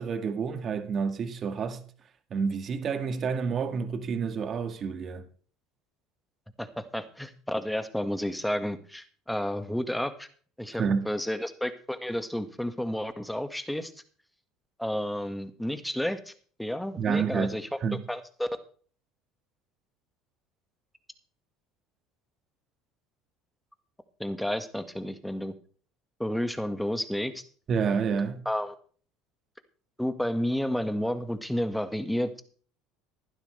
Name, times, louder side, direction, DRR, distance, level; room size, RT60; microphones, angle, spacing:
voice 1, 0.0-1.8 2.3-5.3 10.8-11.0 17.0-18.0 27.7-28.4, right 6 dB, 45° right, 2.0 m, -29 dB
voice 2, 6.6-10.3 10.6-13.9 14.8-16.3 16.6-17.7 18.1-18.5 24.2-25.5 26.2-27.4 28.5-28.7 30.0-32.4, equal, 5° left, 1.8 m, -31 dB
15.0 x 11.5 x 3.4 m
supercardioid pair, 85°, 0 cm